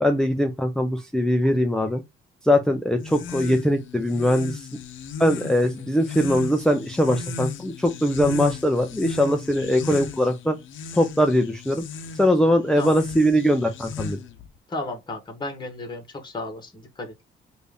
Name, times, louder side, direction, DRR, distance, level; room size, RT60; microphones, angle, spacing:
voice 1, 0.0-2.0 2.4-4.7 5.2-10.6 10.9-11.8 12.2-14.2, equal, 5° left, 0.6 m, -21 dB
sound 1, 3.0-14.5, left 5 dB, 75° left, 0.8 m, -36 dB
voice 2, 14.7-17.2, left 2 dB, 20° left, 1.5 m, -34 dB
3.4 x 2.7 x 3.4 m
cardioid pair, 90°, 20 cm